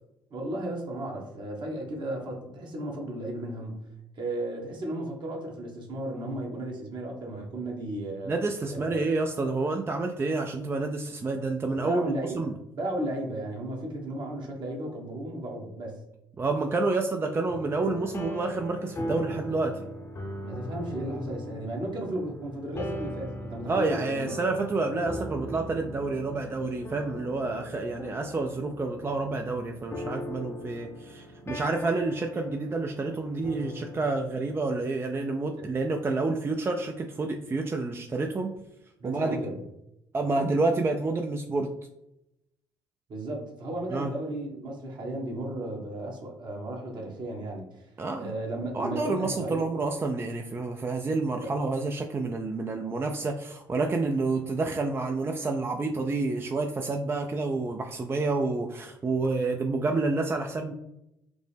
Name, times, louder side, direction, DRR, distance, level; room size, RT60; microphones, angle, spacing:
voice 1, 0.3-3.7 4.1-8.3 8.7-9.1 11.8-12.3 12.8-16.0 20.4-24.3 35.6-35.7 39.0-39.6 43.1-47.8 48.2-49.6 51.4-51.5, right 1 dB, 50° right, 0 dB, 1.1 m, -34 dB
voice 2, 8.3-12.6 16.4-19.8 23.7-38.5 39.0-39.4 40.1-41.7 43.9-44.1 48.0-48.3 48.7-60.7, right 3 dB, 25° right, 4 dB, 0.4 m, -29 dB
sound 1, 17.5-34.3, equal, 25° left, 0.7 m, -39 dB
5.0 x 2.0 x 3.3 m, 0.85 s
hypercardioid pair, 55°, 10 cm